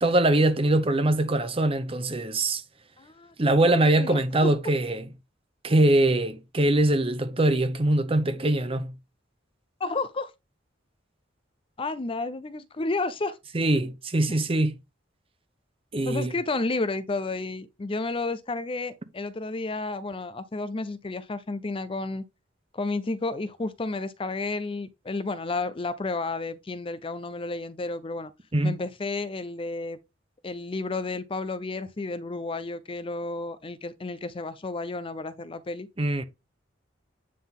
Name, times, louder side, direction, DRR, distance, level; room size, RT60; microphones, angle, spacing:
voice 1, 0.0-2.6 3.4-5.1 5.6-8.9 13.5-14.8 15.9-16.3 28.5-28.8 36.0-36.2, right 1 dB, 30° right, 0.8 m, -23 dB
voice 2, 3.0-3.3 3.6-4.5 9.8-10.3 11.8-13.4 14.3-14.4 16.0-22.2 22.7-28.3 28.6-30.0 30.4-35.9, left 3 dB, 30° left, 0.5 m, -31 dB
9.4 x 3.8 x 3.6 m
head